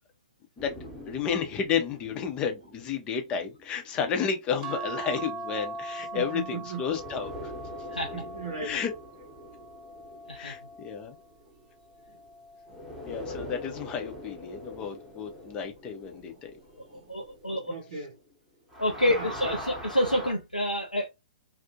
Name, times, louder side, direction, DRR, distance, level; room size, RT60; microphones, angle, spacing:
sound 1, 0.6-5.1 6.8-12.2 12.7-18.3 18.6-20.3, equal, ahead, 0.9 m, -44 dB
voice 1, 1.1-7.5 8.6-8.9 10.3-11.2 13.1-16.5, left 7 dB, 20° left, 0.6 m, -32 dB
sound 2, 4.6-11.2 11.9-13.3 14.5-15.0 15.3-15.4, right 3 dB, 25° right, 0.3 m, -41 dB
voice 2, 5.9-6.8 8.1-8.8 10.3-10.4 10.8-11.0 12.1-12.2 12.7-13.1 13.5-13.6 15.5-15.6 16.3-16.4 16.9-18.1 18.9-19.7, right 5 dB, 55° right, 0.8 m, -40 dB
voice 3, 17.1-17.7 18.8-19.6 19.9-21.1, left 1 dB, 90° left, 0.4 m, -27 dB
2.5 x 2.1 x 2.6 m
figure-of-eight pair, 115°, 4 cm